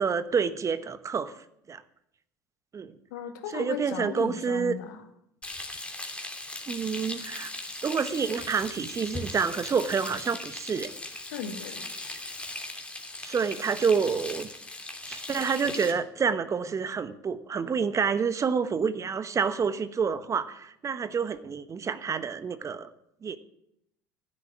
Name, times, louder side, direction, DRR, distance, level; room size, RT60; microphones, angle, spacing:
voice 1, 0.0-1.3 1.7-1.8 2.7-2.9 3.5-4.7 6.7-7.5 7.8-10.9 13.2-14.5 15.1-22.9 23.2-23.4, right 6 dB, 30° right, 13 dB, 1.1 m, -28 dB
voice 2, 3.1-5.0 11.3-11.9, left 8 dB, 70° left, 7 dB, 2.2 m, -36 dB
Frying (food), 5.4-15.9, left 2 dB, 10° left, 2.9 m, -38 dB
15.5 x 7.6 x 9.8 m, 0.79 s
hypercardioid pair, 65°, 10 cm